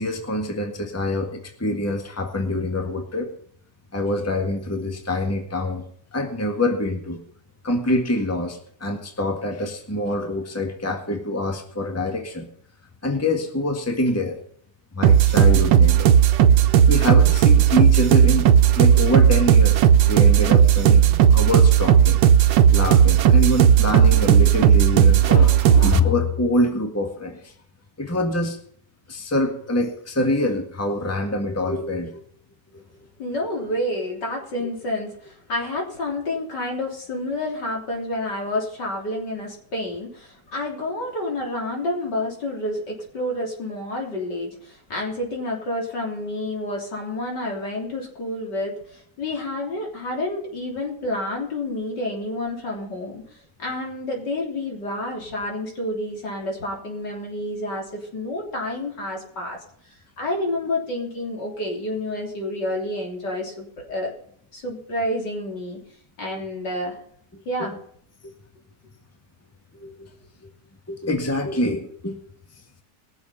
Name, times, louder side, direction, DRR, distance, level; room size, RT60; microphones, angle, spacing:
voice 1, 0.0-3.3 3.9-5.9 6.1-7.2 7.6-12.5 13.0-14.4 14.9-16.1 16.9-18.5 18.7-21.0 21.3-22.2 22.7-27.5 28.0-28.6 29.1-32.2 34.6-34.7 66.2-66.4 67.3-67.4 68.2-68.3 69.7-70.1 70.4-70.5 70.9-72.2, left 1 dB, 10° left, 4 dB, 1.7 m, -25 dB
sound 1, 15.0-26.0, right 8 dB, 85° right, 1.5 m, -15 dB
voice 2, 33.2-59.6 60.2-64.1 64.5-65.8 66.2-67.0 67.5-67.8, left 1 dB, 70° left, 0 dB, 4.0 m, -29 dB
21.0 x 7.0 x 5.6 m, 0.62 s
omnidirectional pair, 1.9 m